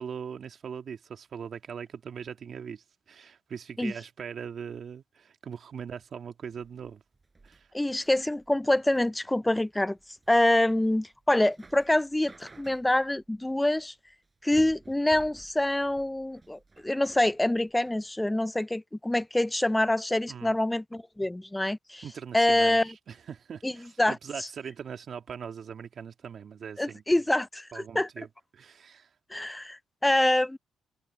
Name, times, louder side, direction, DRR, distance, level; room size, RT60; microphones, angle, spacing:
voice 1, 0.0-7.0 7.4-7.7 20.3-20.6 22.0-27.0 27.7-28.3 28.5-29.1, right 7 dB, 55° right, 1.9 m, -41 dB
sound 1, 6.5-18.1, right 3 dB, 25° right, 4.6 m, -54 dB
voice 2, 7.7-10.0 10.3-13.9 14.4-22.0 22.3-22.9 23.6-23.7 24.0-24.5 26.8-28.1 29.3-30.6, left 1 dB, 10° left, 0.3 m, -26 dB
cardioid pair, 90°, 0 cm